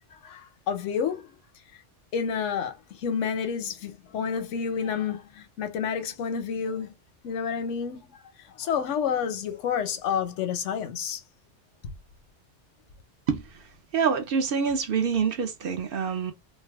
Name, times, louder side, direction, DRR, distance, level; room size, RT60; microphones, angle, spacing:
voice 1, 0.2-1.3 2.1-6.9 7.2-8.2 8.6-11.2, left 7 dB, 90° left, 1.0 m, -29 dB
voice 2, 13.9-16.3, right 6 dB, 60° right, 0.7 m, -26 dB
2.6 x 2.2 x 3.3 m
omnidirectional pair, 1.2 m